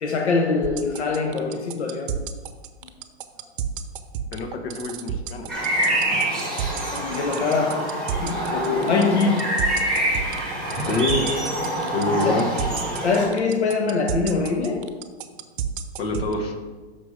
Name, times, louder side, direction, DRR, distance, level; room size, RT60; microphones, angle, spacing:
voice 1, 0.0-2.3 6.4-6.5 6.9-9.5 12.2-12.5 13.0-15.0, left 4 dB, 85° left, 3 dB, 1.0 m, -24 dB
sound 1, 0.6-16.3, right 9 dB, 50° right, 0.7 m, -30 dB
voice 2, 4.3-5.5 10.9-11.3 11.9-12.5 16.0-16.5, left 3 dB, 65° left, 4 dB, 1.4 m, -26 dB
sound 2, 5.5-13.3, right 1 dB, 5° left, 2.4 m, -26 dB
5.9 x 4.8 x 6.3 m, 1.3 s
hypercardioid pair, 140°, 33 cm